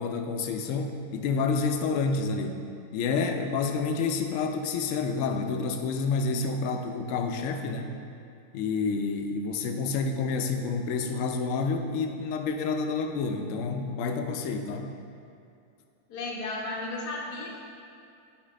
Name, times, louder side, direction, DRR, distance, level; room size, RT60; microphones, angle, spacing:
voice 1, 0.0-2.7 2.9-7.9 8.5-14.9, left 4 dB, 65° left, 5 dB, 0.8 m, -29 dB
voice 2, 16.1-17.6, left 2 dB, 85° left, -4 dB, 1.4 m, -34 dB
7.3 x 4.5 x 5.1 m, 2.5 s
omnidirectional pair, 1.7 m